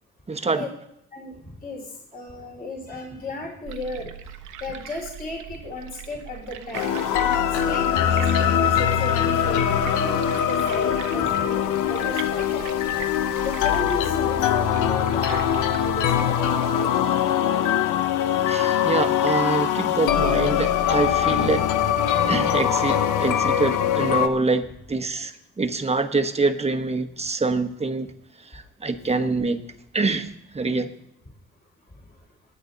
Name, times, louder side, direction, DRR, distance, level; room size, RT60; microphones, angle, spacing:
voice 1, 0.3-0.7 15.3-15.4 18.5-21.6 22.3-24.6 24.9-28.1 28.5-29.6 29.9-30.3 30.5-30.9, right 3 dB, 20° right, 7 dB, 1.2 m, -25 dB
voice 2, 2.1-4.1 4.6-7.1 7.7-12.6 13.4-15.5 15.8-16.9, left 2 dB, 30° left, 0 dB, 3.6 m, -35 dB
sound 1, 3.6-16.7, right 9 dB, 80° right, 1.2 m, -40 dB
sound 2, 6.7-24.3, left 9 dB, 90° left, 0.8 m, -22 dB
19.5 x 8.0 x 4.0 m, 0.75 s
cardioid pair, 90°, 30 cm